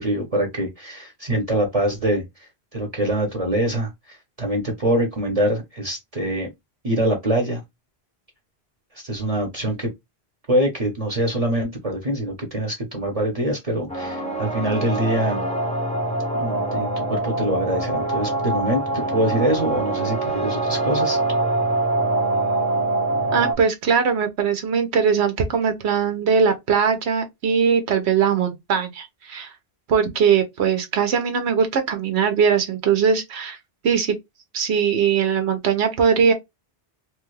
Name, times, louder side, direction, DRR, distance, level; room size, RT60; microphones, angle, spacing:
voice 1, 0.0-2.2 2.7-6.5 6.8-7.6 8.9-9.9 10.5-15.5 16.3-18.8 19.1-21.2, right 1 dB, 35° right, 0.9 m, -24 dB
sound 1, 13.9-23.5, right 2 dB, 10° left, 0.4 m, -24 dB
voice 2, 23.3-29.5 29.9-33.6 33.8-34.2 34.5-36.3, right 6 dB, 85° right, 1.0 m, -20 dB
3.0 x 2.3 x 3.1 m
omnidirectional pair, 1.1 m